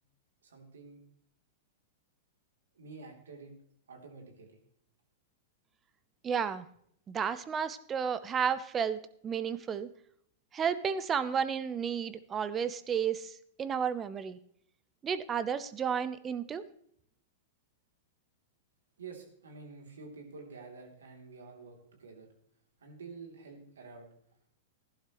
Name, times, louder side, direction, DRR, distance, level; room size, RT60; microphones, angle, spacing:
voice 1, 0.4-1.0 2.7-3.6 3.9-4.6 19.0-22.3 22.8-24.1, right 4 dB, 85° right, 2 dB, 3.1 m, -49 dB
voice 2, 6.2-6.7 7.1-9.9 10.5-14.4 15.0-16.7, right 7 dB, 25° right, 14 dB, 0.8 m, -32 dB
15.5 x 11.5 x 3.1 m, 0.66 s
hypercardioid pair, 120°, 0 cm